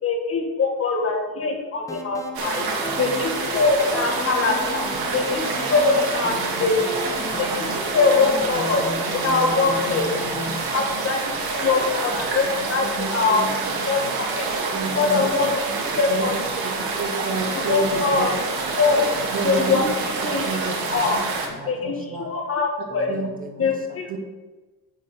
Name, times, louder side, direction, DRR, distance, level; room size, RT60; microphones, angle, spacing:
voice 1, 0.0-6.8 7.4-8.8 9.2-10.1 10.7-13.5 13.9-14.5 15.0-15.6 16.0-16.4 17.7-18.3 18.7-19.2 19.4-21.2 21.7-23.1 23.6-24.2, left 4 dB, 35° left, 1 dB, 2.0 m, -23 dB
sound 1, 1.9-10.6, left 2 dB, 10° left, 0.9 m, -35 dB
sound 2, 2.3-21.5, right 4 dB, 70° right, 2.2 m, -27 dB
voice 2, 2.8-3.7 4.9-5.7 6.2-6.3 6.7-7.4 10.5-10.9 11.3-11.7 12.2-12.3 13.5-13.6 14.0-14.2 14.8-15.1 15.3-15.5 15.8-16.0 16.5-16.6 17.5-17.8 18.1-19.9 20.8-21.1 21.6-21.7 22.9-24.2, right 3 dB, 20° right, 4 dB, 1.2 m, -42 dB
voice 3, 12.8-13.5 14.7-15.2 16.1-16.3 16.6-18.3 19.3-19.8 20.2-21.0 21.6-21.8 22.1-22.3 23.1-23.3 24.1-24.2, right 4 dB, 55° right, -3 dB, 3.4 m, -30 dB
7.7 x 7.6 x 5.6 m, 1.2 s
cardioid pair, 155°, 38 cm